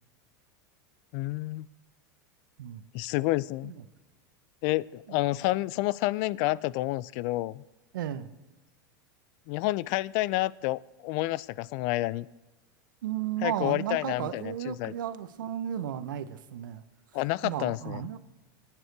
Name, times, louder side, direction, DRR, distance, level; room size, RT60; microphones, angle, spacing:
voice 1, 1.1-1.7 2.9-3.7 4.6-7.6 9.5-12.3 13.4-14.9 17.1-18.0, left 18 dB, 55° left, 22 dB, 0.4 m, -29 dB
voice 2, 7.9-8.3 13.0-16.8 17.4-18.2, right 10 dB, 80° right, 13 dB, 0.9 m, -34 dB
22.0 x 9.0 x 4.7 m, 1.1 s
hypercardioid pair, 115°, 11 cm